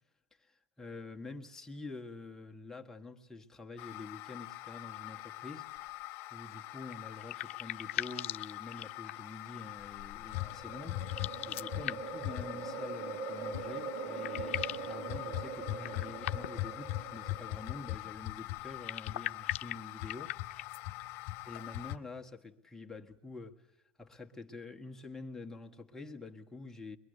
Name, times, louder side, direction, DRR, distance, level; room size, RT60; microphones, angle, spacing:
voice 1, 0.4-6.0 6.3-20.4 21.5-23.7 24.0-27.0, left 3 dB, 5° left, 1.7 m, -47 dB
sound 1, 3.8-22.0, left 18 dB, 50° left, 1.3 m, -42 dB
sound 2, 6.9-9.4 11.0-12.3 13.6-13.7 14.0-14.9 15.8-16.7 18.7-20.8, left 14 dB, 80° left, 0.7 m, -40 dB
sound 3, 10.3-17.9, right 5 dB, 50° right, 3.4 m, -42 dB
24.0 x 23.0 x 6.7 m
supercardioid pair, 120°, 7 cm